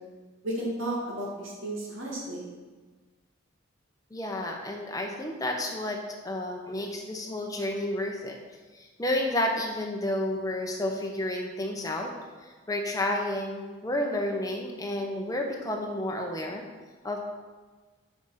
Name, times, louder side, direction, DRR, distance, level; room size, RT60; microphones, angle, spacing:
voice 1, 0.4-2.5, right 1 dB, 70° right, -3 dB, 2.0 m, -33 dB
voice 2, 4.1-6.0 6.2-8.4 8.7-12.1 12.4-16.6 17.0-17.2, left 1 dB, 15° left, 1 dB, 0.8 m, -31 dB
6.0 x 5.0 x 5.8 m, 1.4 s
head